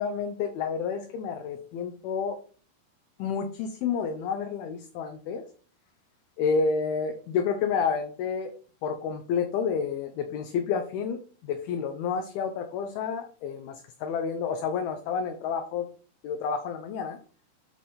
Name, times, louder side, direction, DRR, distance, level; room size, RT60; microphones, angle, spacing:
voice 1, 0.0-2.4 3.2-5.4 6.4-8.5 8.8-15.9 16.2-17.2, left 6 dB, 80° left, 6 dB, 2.4 m, -30 dB
10.0 x 3.3 x 4.2 m, 0.42 s
omnidirectional pair, 4.7 m